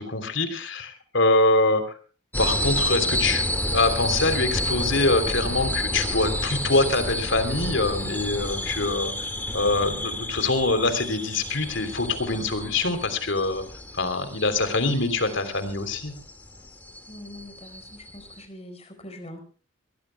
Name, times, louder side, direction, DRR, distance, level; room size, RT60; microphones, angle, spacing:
voice 1, 0.0-1.9 2.4-13.6 13.9-16.1, left 2 dB, 65° left, 9 dB, 3.2 m, -24 dB
sound 1, 2.3-18.4, left 1 dB, 10° left, 1.8 m, -30 dB
voice 2, 9.5-10.2 14.5-15.0 17.1-19.4, left 1 dB, 30° left, 6 dB, 4.5 m, -44 dB
24.0 x 19.5 x 2.2 m, 0.38 s
head